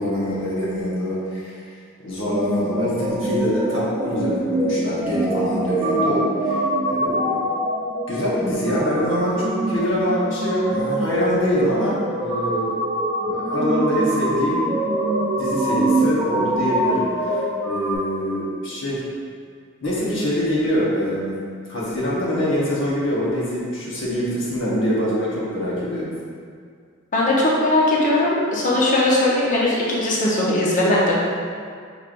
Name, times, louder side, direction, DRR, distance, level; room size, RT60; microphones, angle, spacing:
voice 1, 0.0-1.6 2.0-6.6 6.9-7.4 8.1-12.8 13.2-14.6 15.3-19.0 19.8-26.1, equal, 65° left, -7 dB, 1.1 m, -24 dB
sound 1, 2.3-17.9, right 1 dB, 20° right, 0.8 m, -24 dB
voice 2, 27.1-31.2, left 1 dB, 40° left, -5 dB, 0.8 m, -19 dB
6.0 x 3.3 x 2.5 m, 2.1 s
head